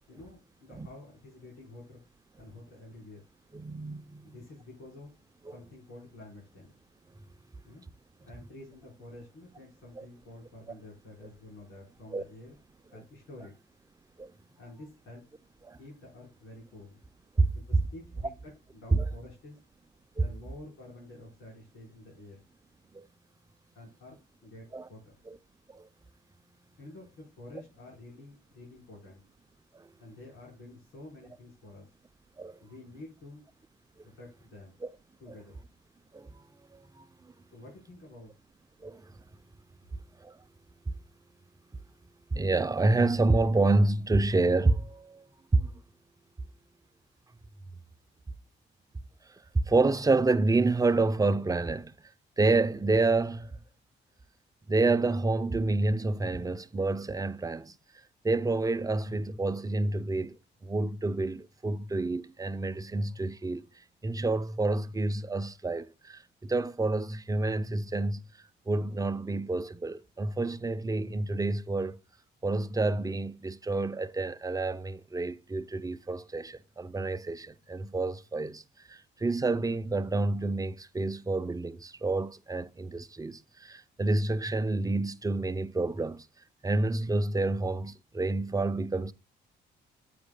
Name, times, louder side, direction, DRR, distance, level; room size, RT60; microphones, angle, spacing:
voice 1, 0.1-2.0 2.4-3.2 4.3-5.1 5.5-6.7 7.6-7.8 8.2-12.6 12.9-13.5 14.6-15.2 15.8-17.0 17.5-19.6 20.1-22.4 23.7-25.1 26.8-29.2 30.0-31.9 32.6-33.4 34.0-34.7 35.2-35.6 37.5-38.3, left 2 dB, 85° left, 4.5 m, -49 dB
voice 2, 3.5-4.4 10.0-10.1 12.1-12.2 14.2-14.3 15.6-15.8 17.4-17.8 18.9-19.1 20.2-20.3 22.9-23.1 24.7-24.9 25.3-25.4 25.7-25.9 29.7-29.9 32.4-32.6 34.8-34.9 36.1-36.4 36.7-37.3 38.8-39.1 40.2-40.4 40.9-41.0 42.3-45.2 45.5-45.7 49.2-51.9 52.4-53.6 54.7-57.7 58.2-60.4 60.6-63.7 64.0-68.2 68.7-72.0 72.4-86.3 86.6-89.1, right 2 dB, 20° right, 0.6 m, -28 dB
9.6 x 8.5 x 2.2 m
cardioid pair, 90°, 20 cm